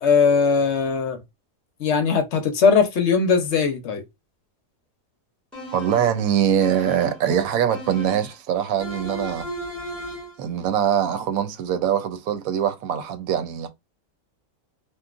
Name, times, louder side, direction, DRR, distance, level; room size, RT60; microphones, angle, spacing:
voice 1, 0.0-1.2 1.8-4.0, left 5 dB, 65° left, 0.8 m, -19 dB
sound 1, 5.5-6.2 6.6-7.3 7.7-8.4 8.8-10.4, equal, ahead, 1.5 m, -35 dB
voice 2, 5.7-9.5 10.4-13.7, right 9 dB, 90° right, 1.0 m, -23 dB
3.0 x 2.4 x 2.3 m
omnidirectional pair, 1.4 m